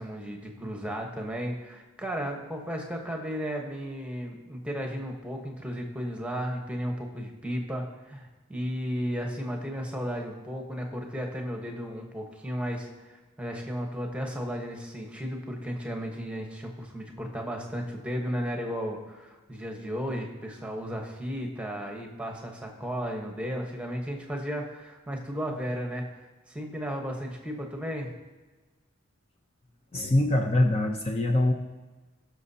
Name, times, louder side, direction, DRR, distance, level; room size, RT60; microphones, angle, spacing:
voice 1, 0.0-28.1, equal, 5° right, 2 dB, 1.1 m, -34 dB
voice 2, 29.9-31.5, left 1 dB, 30° left, 2 dB, 0.6 m, -23 dB
19.0 x 6.4 x 2.8 m, 1.2 s
head